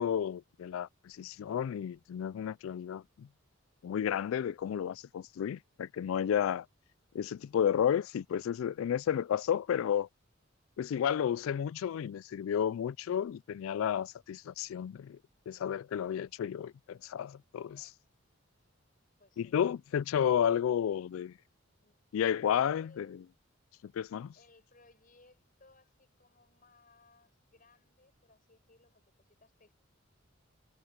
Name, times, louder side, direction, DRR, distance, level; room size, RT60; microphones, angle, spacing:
voice 1, 0.0-3.3 3.8-6.7 7.1-10.1 10.8-15.2 15.5-17.7 19.4-21.3 22.1-23.1 23.8-24.3, left 9 dB, 90° left, 0.3 m, -32 dB
voice 2, 17.7-18.0 19.2-19.6 21.8-23.3 24.3-29.7, left 2 dB, 45° left, 6.2 m, -63 dB
head